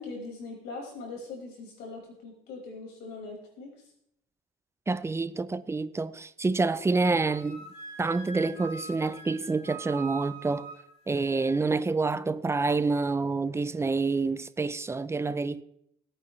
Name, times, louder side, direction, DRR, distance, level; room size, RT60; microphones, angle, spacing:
voice 1, 0.0-3.9, left 3 dB, 80° left, 5.3 m, -41 dB
voice 2, 4.9-7.6 8.0-10.7 11.1-15.6, right 3 dB, 15° right, 0.5 m, -27 dB
Wind instrument woodwind instrument, 7.3-11.5, right 4 dB, 35° left, 5.1 m, -43 dB
20.0 x 8.9 x 3.2 m
cardioid pair, 110°, 17 cm